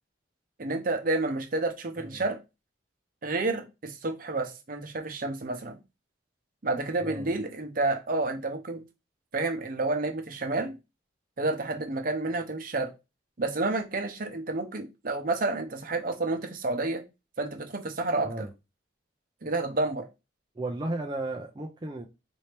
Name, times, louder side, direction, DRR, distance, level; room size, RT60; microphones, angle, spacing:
voice 1, 0.6-2.4 3.2-5.8 6.6-8.8 9.3-10.8 11.4-12.9 13.4-17.0 17.4-18.5 19.4-20.0, right 2 dB, 50° right, 0.8 m, -30 dB
voice 2, 20.6-22.1, right 2 dB, 25° right, 0.5 m, -34 dB
4.3 x 2.8 x 3.3 m
head